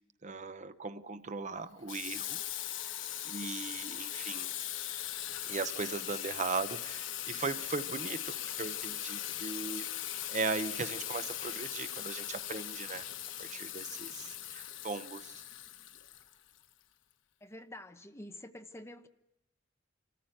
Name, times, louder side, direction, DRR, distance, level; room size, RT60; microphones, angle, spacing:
voice 1, 0.2-2.4 3.2-4.5 5.5-9.9 10.3-13.1 13.4-15.4, right 4 dB, 40° right, 0.8 m, -38 dB
Water tap faucet / Sink (filling or washing), 1.9-16.6, left 12 dB, 80° left, 1.2 m, -39 dB
voice 2, 17.4-19.1, left 1 dB, 15° left, 1.0 m, -48 dB
27.0 x 14.5 x 9.1 m
head